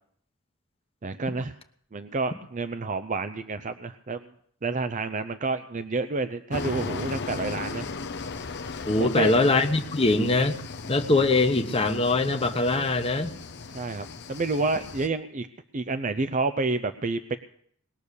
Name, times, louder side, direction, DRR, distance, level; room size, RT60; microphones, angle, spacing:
voice 1, 1.0-1.5 1.9-4.3 4.6-7.9 9.0-9.3 13.7-15.5 15.7-17.4, right 3 dB, 35° right, 10 dB, 0.6 m, -29 dB
sound 1, 6.5-15.1, left 4 dB, 55° left, 0.9 m, -37 dB
voice 2, 8.8-10.6 10.9-13.3, left 2 dB, 25° left, 6 dB, 1.1 m, -22 dB
20.0 x 6.9 x 8.2 m, 0.64 s
head